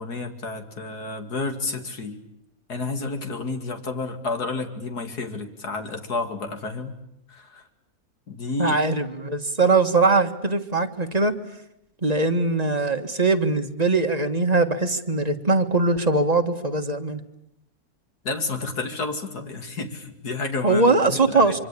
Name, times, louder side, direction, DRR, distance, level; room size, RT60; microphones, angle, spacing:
voice 1, 0.0-2.2 2.7-7.0 7.3-7.6 8.3-8.8 18.2-21.5, left 3 dB, 75° left, 6 dB, 3.1 m, -30 dB
voice 2, 8.6-11.3 12.0-17.2 20.6-21.6, right 3 dB, 25° right, 5 dB, 1.7 m, -21 dB
26.0 x 25.0 x 8.4 m, 0.79 s
omnidirectional pair, 1.7 m